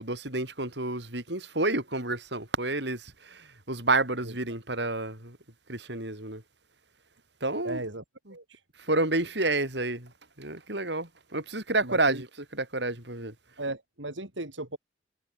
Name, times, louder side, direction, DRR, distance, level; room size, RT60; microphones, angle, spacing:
voice 1, 0.0-5.4 5.7-6.4 7.4-7.8 8.8-10.1 10.4-12.3 12.5-13.3, right 2 dB, 70° right, 7.4 m, -29 dB
voice 2, 7.6-8.0 8.3-8.6 11.8-12.2 13.6-14.8, right 2 dB, 90° right, 5.0 m, -36 dB
head